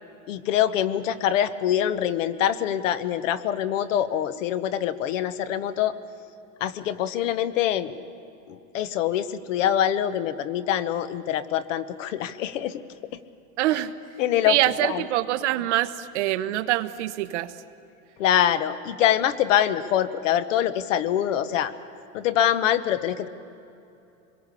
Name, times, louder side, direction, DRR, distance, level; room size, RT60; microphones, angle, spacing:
voice 1, 0.3-6.0 6.6-8.0 8.5-12.8 14.2-14.6 14.8-15.0 18.2-21.7 22.1-23.3, left 10 dB, 60° left, 14 dB, 1.1 m, -24 dB
voice 2, 13.6-13.9 14.5-17.5, right 14 dB, 55° right, 11 dB, 1.0 m, -25 dB
25.0 x 22.0 x 8.4 m, 2.8 s
supercardioid pair, 180°, 42 cm